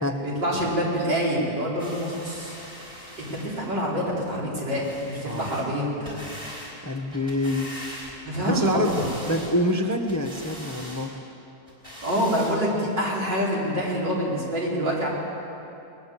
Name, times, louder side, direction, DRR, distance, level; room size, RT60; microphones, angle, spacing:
voice 1, 0.2-2.6 3.2-6.2 8.3-9.1 12.0-15.1, equal, 85° right, -5 dB, 5.3 m, -26 dB
sound 1, 1.8-3.8 4.8-5.7 6.0-6.7 7.1-8.3 8.6-9.6 10.1-11.1 11.7-12.6 13.3-13.4, equal, 15° right, 5.2 m, -41 dB
voice 2, 5.2-5.6 6.8-7.9 8.4-8.9 9.2-11.1, left 1 dB, 10° left, 4 dB, 0.9 m, -26 dB
21.5 x 20.0 x 7.4 m, 2.8 s
omnidirectional pair, 1.8 m